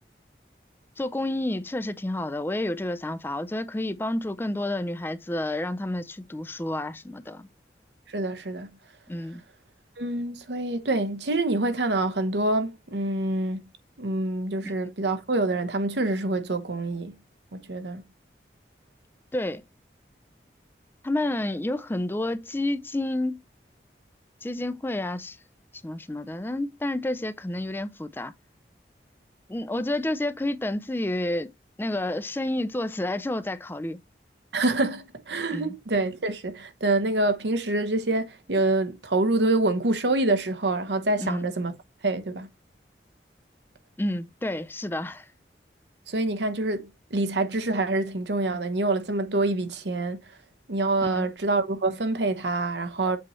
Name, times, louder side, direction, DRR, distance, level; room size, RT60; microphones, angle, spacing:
voice 1, 1.0-7.5 9.1-9.4 14.6-14.7 19.3-19.6 21.0-23.4 24.4-25.4 25.8-28.3 29.5-31.5 31.8-34.0 35.5-35.7 41.2-41.5 44.0-45.3 51.0-51.3, left 1 dB, 10° left, 0.4 m, -30 dB
voice 2, 8.1-8.7 10.0-13.6 14.0-17.1 17.5-18.0 34.5-41.7 42.0-42.5 46.1-50.4 50.7-53.2, right 2 dB, 80° right, 1.0 m, -26 dB
7.5 x 4.3 x 3.1 m
head